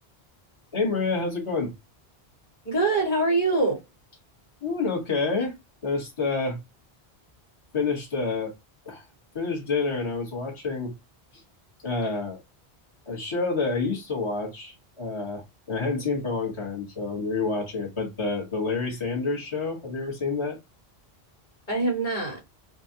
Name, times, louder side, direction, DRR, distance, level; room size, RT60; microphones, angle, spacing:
voice 1, 0.7-1.7 4.6-5.5 5.8-6.6 7.7-8.5 8.8-9.0 9.3-10.9 11.8-12.4 13.1-20.6, left 4 dB, 30° left, 1.3 m, -28 dB
voice 2, 2.6-3.8 21.7-22.4, right 2 dB, 50° left, 1.7 m, -24 dB
4.4 x 2.3 x 2.7 m
omnidirectional pair, 1.0 m